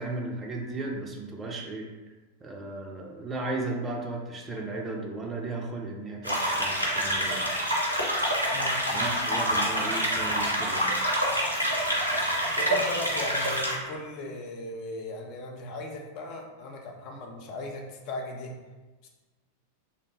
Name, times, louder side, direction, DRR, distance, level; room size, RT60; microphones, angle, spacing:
voice 1, 0.0-1.9 2.4-7.4 8.9-11.0, right 2 dB, 20° right, 0 dB, 0.4 m, -35 dB
sound 1, 6.2-13.7, equal, 85° right, 0.5 m, -27 dB
voice 2, 8.5-8.9 12.5-18.6, left 2 dB, 40° left, 1 dB, 0.4 m, -37 dB
2.6 x 2.0 x 3.1 m, 1.2 s
figure-of-eight pair, 90°, 0 cm